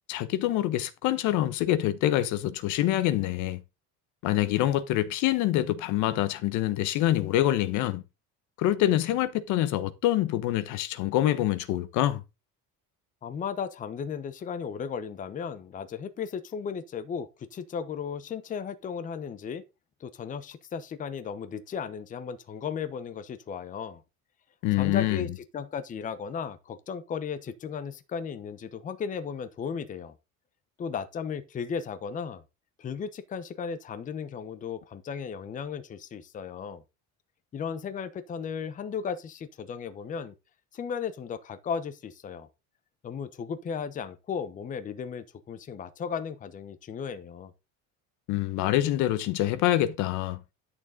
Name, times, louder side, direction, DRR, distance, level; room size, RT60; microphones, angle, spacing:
voice 1, 0.1-3.6 4.2-8.0 8.6-12.2 24.6-25.3 48.3-50.4, left 13 dB, 65° left, 1.1 m, -26 dB
voice 2, 13.2-19.6 20.0-24.0 24.7-30.1 30.8-32.4 32.8-36.8 37.5-40.3 40.7-42.5 43.0-47.5, left 6 dB, 25° left, 0.9 m, -35 dB
11.0 x 6.8 x 3.8 m
cardioid pair, 170°, 33 cm